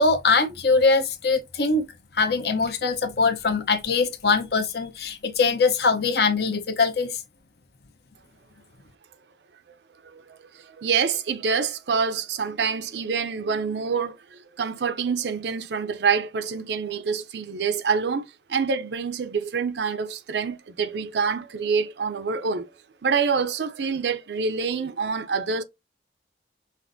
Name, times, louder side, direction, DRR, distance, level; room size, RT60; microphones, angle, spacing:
voice 1, 0.0-1.8 2.2-7.1, left 4 dB, 65° left, 0.8 m, -22 dB
voice 2, 10.1-22.7 23.0-25.6, right 5 dB, 75° right, 0.5 m, -26 dB
5.8 x 2.5 x 2.6 m
head